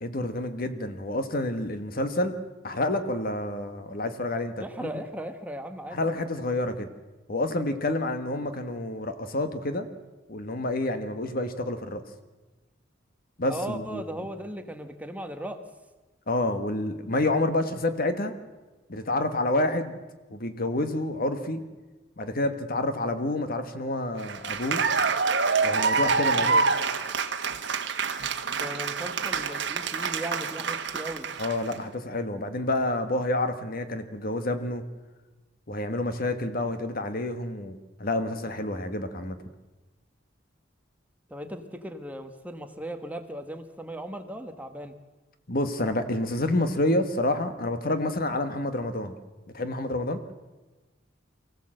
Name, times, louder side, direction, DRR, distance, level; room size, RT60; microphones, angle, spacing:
voice 1, 0.0-2.3 2.6-4.9 5.9-6.9 7.3-9.9 10.3-12.0 13.4-14.0 16.3-18.4 18.9-19.9 20.3-21.6 22.2-24.8 25.6-26.5 31.4-34.8 35.7-39.4 45.5-49.2 49.5-50.2, left 2 dB, 50° left, 9 dB, 1.4 m, -28 dB
voice 2, 4.6-6.1 13.5-15.6 26.4-27.0 28.5-31.3 41.3-44.9, right 1 dB, 10° right, 6 dB, 1.3 m, -37 dB
Cheering / Applause, 24.2-31.7, right 5 dB, 65° right, 1.4 m, -26 dB
24.0 x 16.0 x 7.7 m, 1.2 s
head